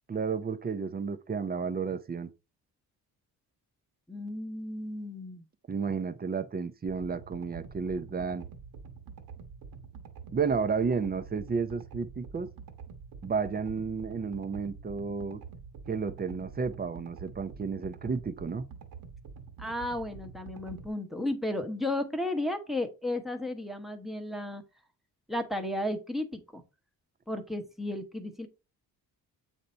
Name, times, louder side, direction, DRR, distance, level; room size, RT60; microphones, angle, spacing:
voice 1, 0.1-2.3 5.7-8.5 10.3-12.5 13.2-15.4 15.9-18.6, right 5 dB, 25° right, 0.6 m, -32 dB
voice 2, 4.1-5.5 19.6-24.6 25.3-26.6 27.3-28.5, left 1 dB, ahead, 0.9 m, -34 dB
sound 1, 6.9-20.9, right 6 dB, 60° right, 1.1 m, -47 dB
8.1 x 2.7 x 4.3 m
cardioid pair, 110°, 39 cm